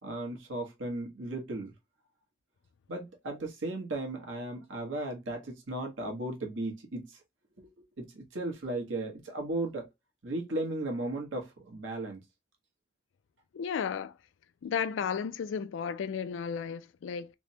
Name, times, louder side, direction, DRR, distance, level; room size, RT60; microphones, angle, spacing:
voice 1, 0.0-1.7 2.9-7.2 7.6-7.7 8.0-9.9 10.2-12.2, right 2 dB, 80° right, 1.1 m, -36 dB
voice 2, 13.5-14.1 14.6-17.3, left 7 dB, 80° left, 0.3 m, -33 dB
3.3 x 2.1 x 2.7 m
head